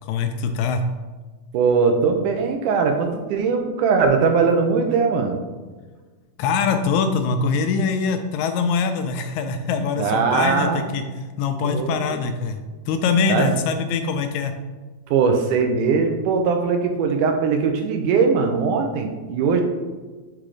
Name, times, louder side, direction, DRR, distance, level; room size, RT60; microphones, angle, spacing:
voice 1, 0.1-0.8 6.4-11.0 11.4-12.6 12.9-14.5, left 5 dB, 80° left, 7 dB, 1.8 m, -23 dB
voice 2, 1.5-5.4 10.0-10.9 11.6-12.2 13.3-13.5 15.1-19.6, right 5 dB, 90° right, 5 dB, 2.3 m, -20 dB
6.2 x 3.8 x 4.8 m, 1.3 s
omnidirectional pair, 3.5 m